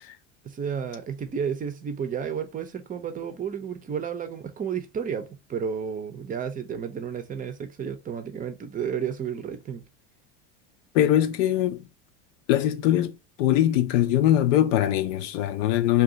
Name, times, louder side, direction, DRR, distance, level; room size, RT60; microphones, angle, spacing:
voice 1, 0.4-9.8, right 7 dB, 25° right, 0.5 m, -32 dB
voice 2, 10.9-11.8 12.5-13.1 13.4-16.0, left 12 dB, 80° left, 0.6 m, -22 dB
2.6 x 2.3 x 3.7 m
supercardioid pair, 110°, 36 cm